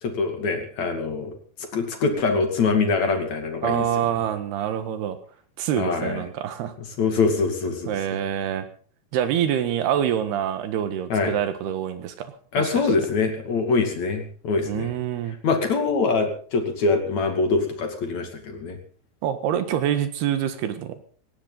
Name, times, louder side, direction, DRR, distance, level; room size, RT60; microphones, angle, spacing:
voice 1, 0.0-1.3 1.7-3.9 5.7-6.2 7.0-7.9 11.1-11.3 12.5-14.9 15.4-18.8, left 4 dB, 45° left, 5 dB, 3.3 m, -24 dB
voice 2, 3.6-5.2 5.6-6.7 7.9-8.7 9.1-12.7 14.7-15.4 19.2-21.0, right 10 dB, 70° right, 10 dB, 3.4 m, -26 dB
18.5 x 17.5 x 4.1 m, 0.44 s
omnidirectional pair, 5.1 m